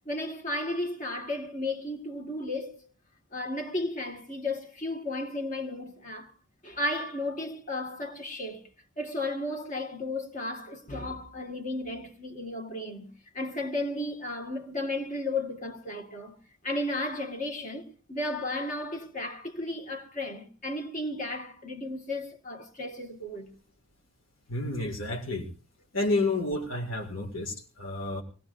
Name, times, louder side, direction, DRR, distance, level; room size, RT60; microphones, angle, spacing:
voice 1, 0.0-2.8 3.3-6.3 6.6-8.6 9.0-16.4 16.6-23.5, left 1 dB, 40° left, 1.7 m, -34 dB
voice 2, 24.5-25.5 25.9-28.2, left 2 dB, 75° left, 2.1 m, -30 dB
23.5 x 18.5 x 2.5 m
head